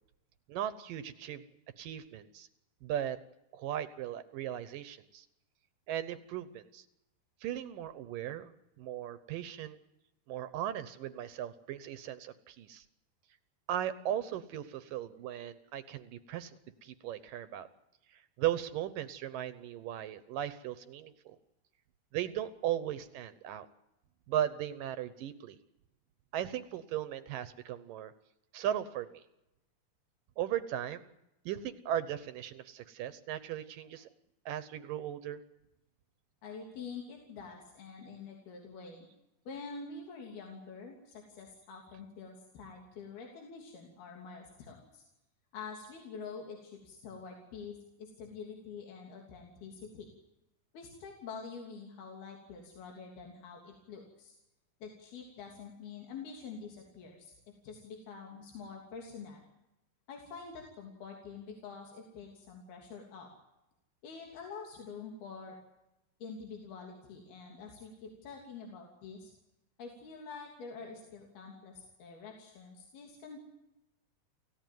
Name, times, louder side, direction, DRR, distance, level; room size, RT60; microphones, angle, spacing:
voice 1, 0.5-1.4 1.8-2.5 2.8-3.2 3.5-5.3 5.9-6.9 7.4-9.8 10.3-12.8 13.7-17.7 18.1-21.4 22.1-23.7 24.3-25.6 26.3-28.1 28.5-29.2 30.4-31.1 31.5-34.1 34.5-35.4, right 11 dB, 70° right, 13 dB, 2.5 m, -37 dB
voice 2, 36.4-39.1 39.5-45.0 45.5-50.1 50.7-54.4 54.8-57.4 57.6-59.5 60.1-63.3 64.0-65.6 66.2-69.3 69.8-73.4, left 5 dB, 85° left, 1 dB, 5.1 m, -46 dB
29.5 x 15.5 x 9.4 m, 0.91 s
omnidirectional pair, 4.3 m